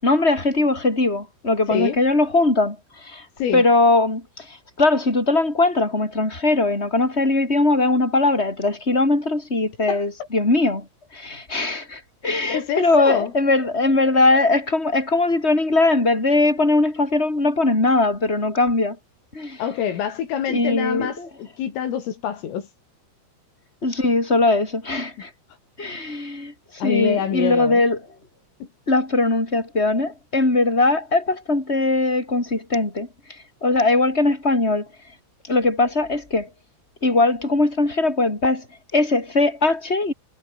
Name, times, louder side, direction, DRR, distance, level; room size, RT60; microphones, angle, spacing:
voice 1, 0.0-3.3 3.5-10.9 11.1-19.0 19.3-19.6 20.5-21.3 23.8-25.3 25.8-28.0 28.9-34.9 35.4-36.5 37.0-38.7 38.9-40.1, left 2 dB, 10° left, 7.5 m, -20 dB
voice 2, 12.5-13.3 19.6-22.7 26.8-27.8 28.6-28.7, left 9 dB, 75° left, 5.6 m, -25 dB
omnidirectional pair, 6.0 m